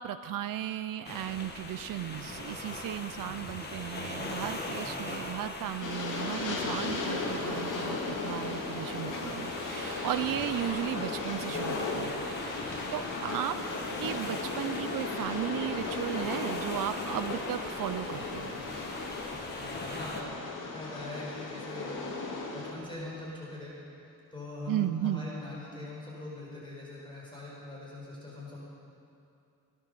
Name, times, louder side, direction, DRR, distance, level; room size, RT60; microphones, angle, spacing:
voice 1, 0.0-12.2 12.6-13.6 14.0-18.6 24.7-25.3, right 12 dB, 80° right, 10 dB, 0.5 m, -35 dB
sound 1, 1.0-20.2, left 2 dB, 30° left, 1.8 m, -41 dB
Train, 5.8-22.7, left 3 dB, 70° left, 2.6 m, -36 dB
voice 2, 19.5-20.2 20.7-23.7 24.0-28.6, left 2 dB, 15° left, -6 dB, 4.8 m, -42 dB
18.5 x 11.0 x 6.8 m, 2.6 s
wide cardioid pair, 120°, 32 cm